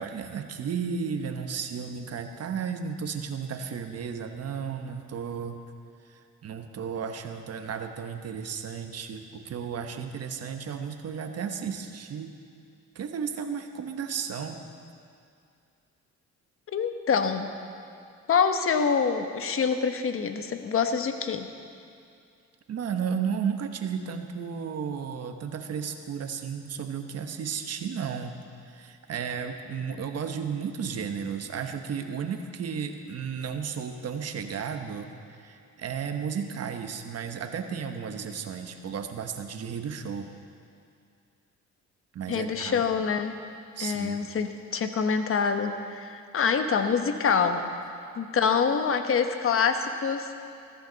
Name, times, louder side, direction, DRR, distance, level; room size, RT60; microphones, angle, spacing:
voice 1, 0.0-5.6 6.1-12.3 12.9-14.6 22.7-28.4 28.6-40.3 42.1-42.8 43.7-44.3, right 6 dB, 55° right, 6 dB, 1.1 m, -34 dB
voice 2, 16.7-17.5 18.3-21.5 42.3-43.3 43.8-47.6 48.2-50.3, left 6 dB, 45° left, 7 dB, 1.1 m, -26 dB
15.0 x 14.0 x 4.0 m, 2.5 s
cardioid pair, 90°, 30 cm